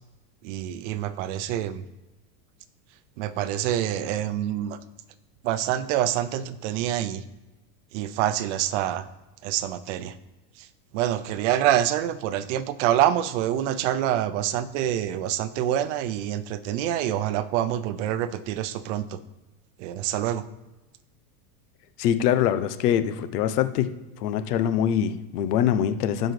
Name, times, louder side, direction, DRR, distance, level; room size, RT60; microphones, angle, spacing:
voice 1, 0.4-1.8 3.2-4.8 5.4-7.2 7.9-9.1 9.4-10.2 10.6-10.7 10.9-19.2 19.8-20.5, right 11 dB, 50° right, 14 dB, 0.7 m, -26 dB
voice 2, 22.0-23.9 24.2-26.3, left 10 dB, 75° left, 11 dB, 1.1 m, -24 dB
7.8 x 5.1 x 6.0 m, 1.1 s
supercardioid pair, 165°, 47 cm